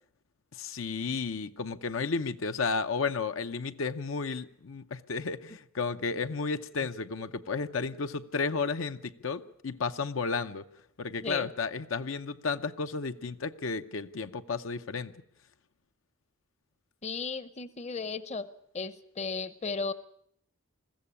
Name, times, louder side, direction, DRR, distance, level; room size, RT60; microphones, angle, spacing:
voice 1, 0.5-10.6 11.0-15.1, left 4 dB, 75° left, 0.7 m, -33 dB
voice 2, 17.0-18.5 18.7-19.9, left 4 dB, 30° left, 0.7 m, -35 dB
21.0 x 15.0 x 8.6 m
head